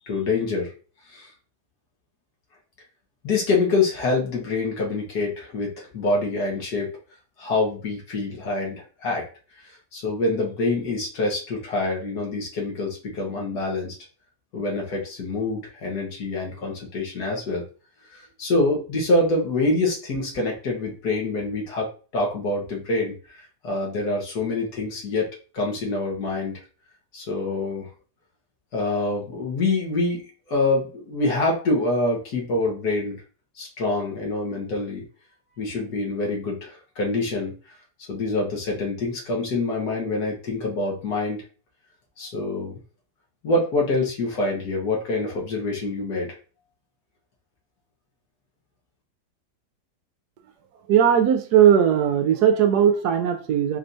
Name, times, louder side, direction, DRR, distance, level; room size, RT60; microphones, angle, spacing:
voice 1, 0.1-0.7 1.1-1.3 3.2-6.9 7.4-9.3 9.6-14.0 14.5-17.6 18.1-25.3 25.5-26.6 27.1-27.9 28.7-33.2 33.6-35.0 35.6-37.8 38.1-41.4 42.2-42.8 43.4-46.3, left 2 dB, 65° left, -2 dB, 1.7 m, -26 dB
voice 2, 50.9-53.8, right 9 dB, 75° right, 7 dB, 1.1 m, -18 dB
4.3 x 3.3 x 2.6 m, 0.38 s
omnidirectional pair, 1.8 m